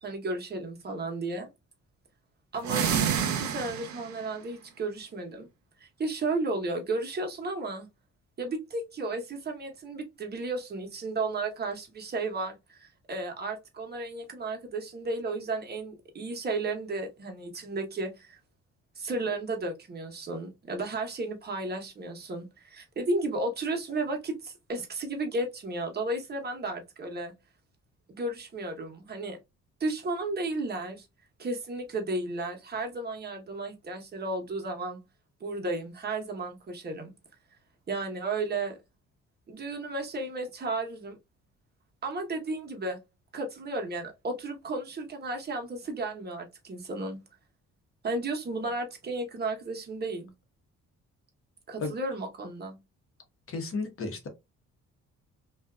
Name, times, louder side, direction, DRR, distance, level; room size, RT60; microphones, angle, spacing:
voice 1, 0.0-1.5 2.5-2.9 3.3-5.5 5.8-7.9 8.4-18.4 19.0-27.3 28.1-29.4 29.8-31.1 31.4-35.0 35.4-37.1 37.9-38.8 39.5-41.2 42.0-43.0 43.3-47.2 48.0-50.3 51.7-52.8, right 2 dB, 35° right, 1.0 m, -33 dB
sound 1, 2.6-4.2, right 8 dB, 70° right, 0.7 m, -28 dB
voice 2, 53.5-54.3, left 3 dB, 45° left, 0.9 m, -33 dB
2.6 x 2.4 x 2.3 m
cardioid pair, 90°, 30 cm